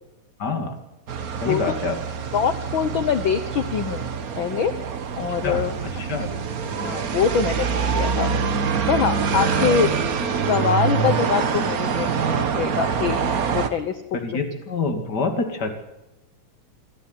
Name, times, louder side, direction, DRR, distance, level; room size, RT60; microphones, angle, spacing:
voice 1, 0.4-0.8 1.4-2.0 5.4-6.3 9.6-9.9 14.1-15.7, left 4 dB, 35° left, 6 dB, 2.5 m, -27 dB
sound 1, 1.1-13.7, right 6 dB, 80° right, 0.8 m, -25 dB
voice 2, 2.3-4.1 4.4-4.7 5.2-5.7 6.8-8.3 8.9-9.9 10.3-13.2 13.5-14.0, left 7 dB, 75° left, 11 dB, 1.1 m, -24 dB
26.0 x 12.0 x 9.7 m, 0.98 s
omnidirectional pair, 3.5 m